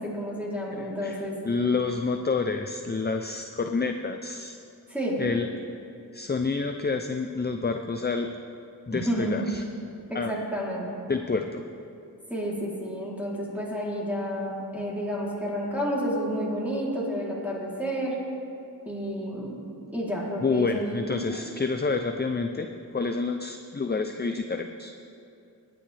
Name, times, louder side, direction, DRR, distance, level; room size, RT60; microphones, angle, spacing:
voice 1, 0.0-1.4 4.9-5.2 8.9-9.5 10.1-10.9 12.3-18.2 18.8-19.6 19.9-20.9 21.3-21.4, equal, 5° right, -6 dB, 3.3 m, -30 dB
voice 2, 0.7-4.6 5.2-5.5 6.1-8.3 8.9-9.6 10.1-10.3 11.1-11.6 20.4-24.9, left 4 dB, 25° left, 6 dB, 0.5 m, -28 dB
19.5 x 10.0 x 3.4 m, 2.6 s
wide cardioid pair, 75°, 38 cm